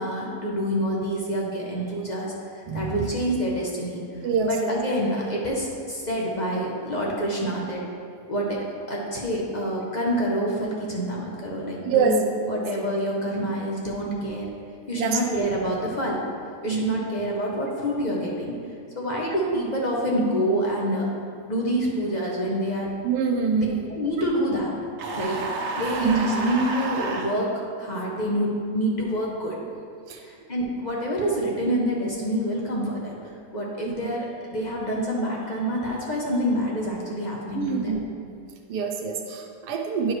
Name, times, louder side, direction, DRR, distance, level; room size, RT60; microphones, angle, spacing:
voice 1, 0.0-4.0 4.5-7.8 8.3-14.4 14.9-16.2 16.6-18.5 18.9-21.1 21.5-22.9 23.5-23.7 23.9-24.7 25.1-27.5 27.8-29.6 30.2-33.1 33.5-37.9, equal, 35° left, -3 dB, 0.7 m, -27 dB
voice 2, 2.7-3.1 4.2-4.7 11.8-12.2 14.9-15.5 16.7-17.0 23.0-23.8 26.0-26.5 30.1-30.2 34.0-34.1 37.5-38.4 38.7-40.1, right 5 dB, 80° right, 1 dB, 1.2 m, -25 dB
sound 1, 25.0-27.3, right 3 dB, 60° right, 1.0 m, -30 dB
10.0 x 4.7 x 3.2 m, 2.3 s
omnidirectional pair, 1.7 m